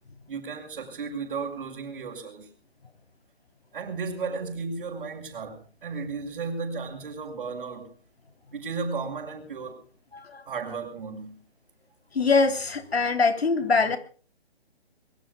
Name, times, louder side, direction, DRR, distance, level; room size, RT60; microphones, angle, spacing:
voice 1, 0.3-2.5 3.7-7.9 8.5-9.8 10.5-11.4, right 4 dB, 50° right, 5.7 m, -34 dB
voice 2, 10.1-10.5 12.1-14.0, left 4 dB, 75° left, 3.6 m, -23 dB
25.5 x 22.5 x 2.4 m
hypercardioid pair, 150°, 31 cm